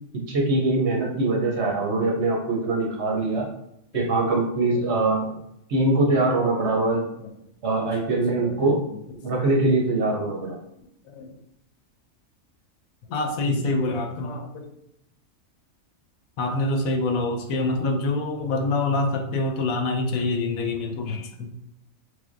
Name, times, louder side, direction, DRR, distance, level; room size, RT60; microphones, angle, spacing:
voice 1, 0.3-3.5 3.9-5.3 5.7-7.1 7.6-8.8 9.2-10.6 13.4-13.5, right 2 dB, 60° right, -1 dB, 0.9 m, -23 dB
voice 2, 4.7-5.1 6.1-6.2 6.5-6.9 7.2-7.3 7.8-7.9 8.4-9.0 9.3-9.4 11.1-11.3 13.1-14.7 16.4-21.5, left 2 dB, 75° left, 3 dB, 1.0 m, -27 dB
3.3 x 3.3 x 2.5 m, 0.77 s
omnidirectional pair, 1.5 m